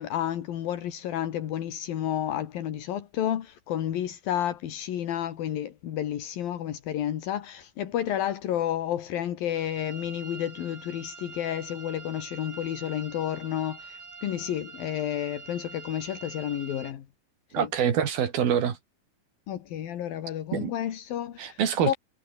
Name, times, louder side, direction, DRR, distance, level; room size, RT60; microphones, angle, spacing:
voice 1, 0.0-17.1 17.5-17.7 19.5-21.9, left 11 dB, 75° left, 3.6 m, -31 dB
sound 1, 9.6-16.9, right 4 dB, 65° right, 8.2 m, -45 dB
voice 2, 17.5-18.8 20.5-20.7 21.4-21.9, right 8 dB, 80° right, 4.6 m, -25 dB
omnidirectional pair, 4.2 m